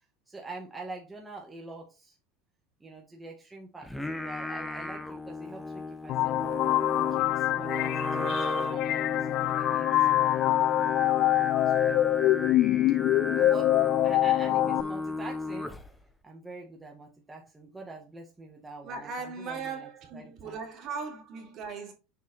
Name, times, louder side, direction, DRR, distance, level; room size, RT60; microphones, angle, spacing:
voice 1, 0.3-2.2 2.8-6.4 6.9-10.6 11.4-12.1 13.3-13.7 14.0-15.8 16.2-20.6, right 2 dB, 10° right, 1.7 m, -45 dB
Singing, 3.8-16.0, left 2 dB, 5° left, 1.0 m, -35 dB
sound 1, 6.1-14.8, left 14 dB, 55° left, 0.3 m, -25 dB
voice 2, 14.1-14.7 18.8-21.9, right 5 dB, 50° right, 3.2 m, -39 dB
7.1 x 4.6 x 4.2 m
supercardioid pair, 110°, 0 cm